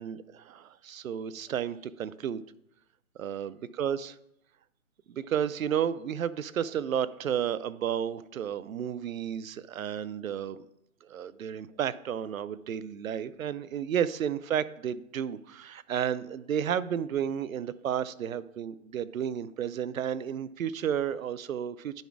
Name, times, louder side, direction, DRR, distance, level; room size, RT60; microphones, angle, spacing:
voice 1, 0.0-2.4 3.2-4.2 5.1-10.7 11.0-22.0, right 9 dB, 75° right, 16 dB, 0.6 m, -32 dB
10.5 x 4.1 x 4.7 m, 0.78 s
hypercardioid pair, 175°, 41 cm